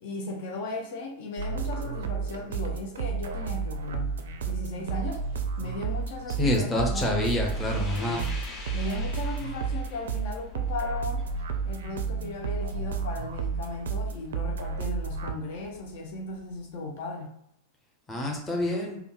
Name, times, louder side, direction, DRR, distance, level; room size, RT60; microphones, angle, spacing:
voice 1, 0.0-7.2 7.9-8.3 8.7-11.3 11.6-17.3, left 2 dB, 50° left, 1 dB, 0.5 m, -37 dB
sound 1, 1.4-15.3, right 5 dB, 65° right, 0.4 m, -32 dB
sound 2, 2.9-16.8, left 4 dB, 30° left, 1.3 m, -45 dB
voice 2, 6.4-8.2 18.1-19.0, left 1 dB, 15° left, 0 dB, 0.9 m, -27 dB
3.4 x 2.3 x 3.1 m, 0.76 s
figure-of-eight pair, 90°, 0 cm